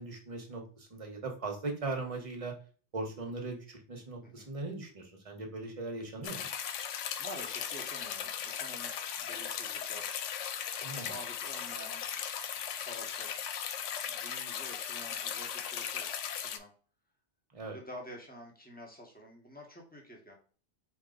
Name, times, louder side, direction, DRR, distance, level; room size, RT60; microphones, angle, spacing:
voice 1, 0.0-2.5 2.9-6.5 10.8-11.1 17.5-17.8, right 3 dB, 30° right, 3 dB, 1.1 m, -39 dB
sound 1, 6.2-16.6, left 8 dB, 85° left, 0.9 m, -37 dB
voice 2, 7.2-10.1 10.8-12.2 12.7-13.4 14.0-16.1 16.3-16.7 17.7-20.4, equal, 10° left, -1 dB, 1.2 m, -49 dB
4.5 x 3.0 x 3.8 m, 0.40 s
omnidirectional pair, 1.2 m